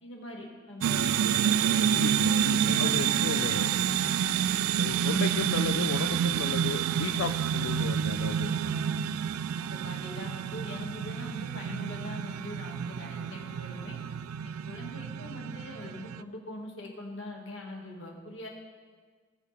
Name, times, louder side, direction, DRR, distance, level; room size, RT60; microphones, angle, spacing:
voice 1, 0.0-4.1 8.4-9.0 9.6-14.0 14.4-18.5, left 1 dB, 65° left, -1 dB, 1.9 m, -42 dB
sound 1, 0.8-16.2, right 9 dB, 90° right, 0.3 m, -29 dB
voice 2, 1.9-3.7 4.8-8.5, left 6 dB, 85° left, 8 dB, 0.4 m, -34 dB
19.0 x 6.5 x 3.4 m, 1.5 s
head